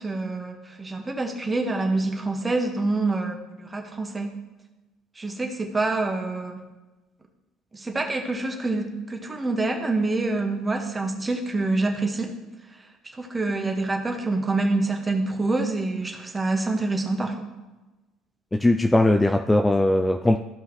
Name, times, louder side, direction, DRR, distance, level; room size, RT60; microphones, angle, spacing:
voice 1, 0.0-4.3 5.2-6.6 7.7-12.3 13.2-17.5, right 2 dB, 20° right, 3 dB, 1.7 m, -26 dB
voice 2, 18.5-20.4, left 1 dB, 10° left, 8 dB, 0.4 m, -19 dB
15.0 x 5.5 x 3.2 m, 1.1 s
hypercardioid pair, 60°, 0 cm